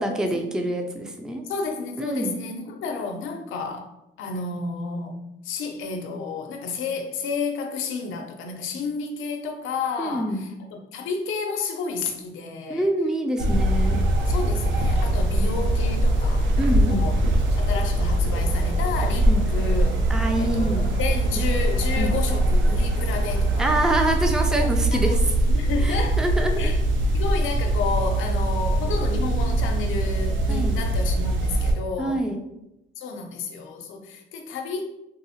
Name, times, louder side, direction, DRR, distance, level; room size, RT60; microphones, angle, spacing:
voice 1, 0.0-1.4 2.0-2.4 10.0-10.5 12.7-14.0 16.6-17.1 19.3-19.4 20.1-20.9 22.0-22.1 23.6-25.2 25.8-26.7 30.5-30.8 32.0-32.4, right 1 dB, 5° right, 4 dB, 0.4 m, -26 dB
voice 2, 1.4-3.9 4.2-12.9 13.7-13.9 14.2-17.2 17.6-19.9 20.4-23.7 24.5-25.2 25.5-26.2 26.6-26.8 27.1-32.2 33.0-34.9, left 4 dB, 85° left, 4 dB, 0.5 m, -31 dB
sound 1, 13.4-31.7, right 1 dB, 70° right, 0.6 m, -22 dB
sound 2, 13.5-23.8, right 3 dB, 55° right, 1.2 m, -36 dB
3.7 x 2.0 x 2.7 m, 0.88 s
cardioid pair, 90°, 20 cm